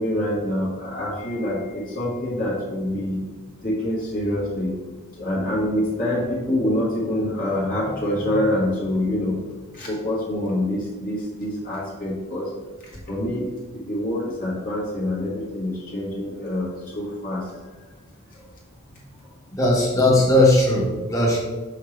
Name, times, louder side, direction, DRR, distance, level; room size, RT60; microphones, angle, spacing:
voice 1, 0.0-3.2 3.6-4.7 5.2-9.4 9.7-12.5 13.1-17.5 18.9-19.0, left 1 dB, 40° left, -6 dB, 1.6 m, -26 dB
voice 2, 19.5-21.4, left 1 dB, 15° left, -3 dB, 1.4 m, -18 dB
6.4 x 5.7 x 3.3 m, 1.3 s
head